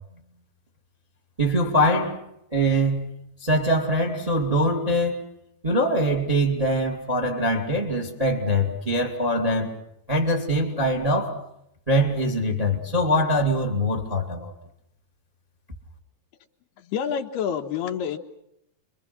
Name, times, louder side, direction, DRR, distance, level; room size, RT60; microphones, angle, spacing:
voice 1, 1.4-2.2 2.5-3.1 3.4-5.2 5.6-9.7 10.1-11.4 11.9-14.5, equal, 15° right, 1.5 m, -23 dB
voice 2, 16.8-18.2, left 8 dB, 80° left, 3.2 m, -28 dB
29.5 x 24.0 x 6.0 m
omnidirectional pair, 4.6 m